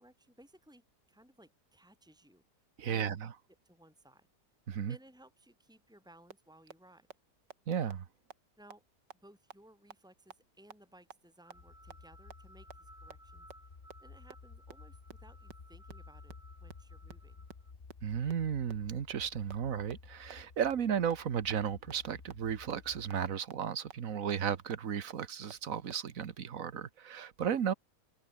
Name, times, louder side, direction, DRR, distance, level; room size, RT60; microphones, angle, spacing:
voice 1, 0.0-2.4 2.8-3.3 3.6-4.3 4.9-7.1 8.6-8.8 9.2-13.7 14.0-16.3 16.6-17.4, right 1 dB, ahead, 5.4 m, -60 dB
voice 2, 2.8-3.3 4.7-5.0 7.7-8.0 18.0-27.7, right 8 dB, 55° right, 1.5 m, -34 dB
sound 1, 6.3-6.4 6.7-6.8 7.1-7.2 7.5-7.6 7.9-8.0 8.3-8.4 8.7-8.8 9.1-9.2 9.5-9.6 9.9-10.0 10.3-10.4 10.7-10.8 11.1-11.2 11.5-11.6 11.9-12.0 12.3-12.4 12.7-12.8 13.1-13.2 13.5-13.6 13.9-14.0 14.3-14.4 14.7-14.8 15.1-15.2 15.5-15.6 15.9-16.0 16.3-16.4 16.7-16.8 17.1-17.2 17.5-17.6 17.9-18.0 18.3-18.4 18.7-18.8 19.1-19.2 19.5-19.6 19.9-20.0 20.3-20.4 20.7-20.8 21.1-21.2 21.5-21.6 21.9-22.0 22.3-22.4 22.7-22.8 23.1-23.2 23.5-23.6 23.9-24.0 24.3-24.4 24.7-24.8 25.1-25.2 25.5-25.6 25.9-26.0, right 8 dB, 90° right, 2.1 m, -47 dB
sound 2, 11.4-17.7, right 1 dB, 20° right, 3.7 m, -60 dB
sound 3, 11.5-23.1, left 4 dB, 30° left, 1.5 m, -54 dB
omnidirectional pair, 1.8 m